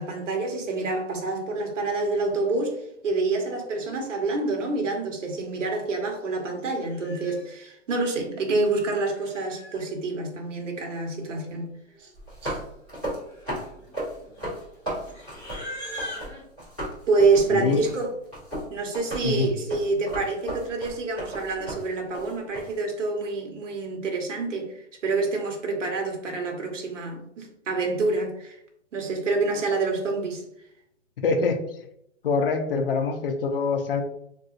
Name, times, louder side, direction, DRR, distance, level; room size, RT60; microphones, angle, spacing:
voice 1, 0.0-2.8 3.0-11.7 12.4-12.6 17.1-18.1 18.7-24.7 25.0-28.6 28.9-30.4, right 3 dB, 75° right, 2 dB, 1.0 m, -27 dB
Livestock farm animals working animals, 6.2-6.4 6.7-7.7 8.6-9.8 10.9-11.0 11.2-11.6 11.9-12.2 12.8-16.4, equal, 20° left, 1.2 m, -42 dB
sound 1, 12.1-16.3 16.6-22.7, right 1 dB, 10° right, 0.5 m, -35 dB
voice 2, 17.5-17.8 19.2-19.5 31.2-31.6 32.2-34.0, left 4 dB, 50° left, 5 dB, 0.5 m, -24 dB
3.8 x 2.4 x 2.4 m, 0.75 s
hypercardioid pair, 175°, 38 cm